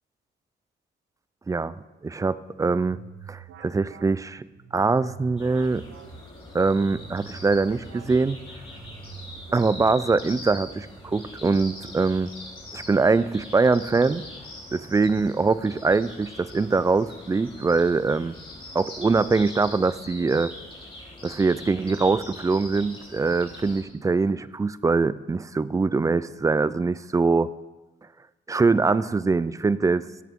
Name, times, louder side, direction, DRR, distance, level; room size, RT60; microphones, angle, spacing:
voice 1, 2.0-3.0 3.3-4.4 4.7-5.8 6.5-8.4 9.5-12.3 12.7-14.2 14.7-18.3 18.7-20.5 21.2-27.5 28.5-30.1, right 4 dB, 15° right, 17 dB, 0.4 m, -23 dB
sound 1, 2.5-10.6, right 9 dB, 80° right, 0.7 m, -46 dB
sound 2, 5.4-23.8, left 1 dB, 25° left, 3.2 m, -42 dB
16.5 x 8.4 x 3.7 m, 1.1 s
cardioid pair, 90°, 20 cm